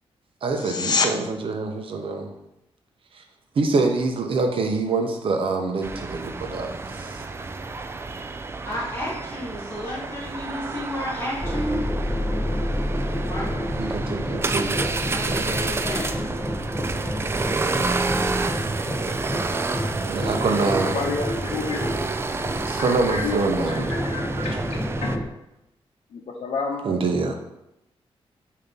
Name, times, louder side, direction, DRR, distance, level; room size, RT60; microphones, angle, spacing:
voice 1, 0.4-2.3 3.2-3.3 3.6-7.2 13.7-15.8 20.0-21.1 22.7-23.9 24.4-24.5 26.8-27.3, right 3 dB, 60° right, 4 dB, 0.8 m, -26 dB
sound 1, 0.5-1.1 12.5-12.6, left 4 dB, 40° left, 0.6 m, -24 dB
sound 2, 5.8-25.2, right 3 dB, 25° right, 0.3 m, -30 dB
voice 2, 8.6-11.8 13.2-13.6 15.1-16.1, equal, 25° left, -6 dB, 2.4 m, -31 dB
sound 3, 11.4-25.2, equal, 5° left, 0.7 m, -29 dB
voice 3, 20.9-21.9 22.8-24.5 25.0-25.1 26.1-26.8, left 4 dB, 75° left, -2 dB, 0.8 m, -30 dB
6.9 x 2.8 x 5.4 m, 0.87 s
wide cardioid pair, 135°, 10 cm